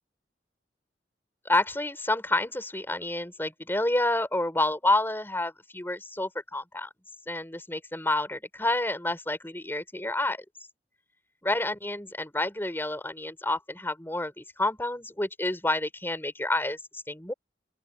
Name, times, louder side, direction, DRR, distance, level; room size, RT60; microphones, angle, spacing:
voice 1, 1.5-6.9 7.3-10.4 11.4-17.3, left 2 dB, 15° left, 5.2 m, -29 dB
open air
head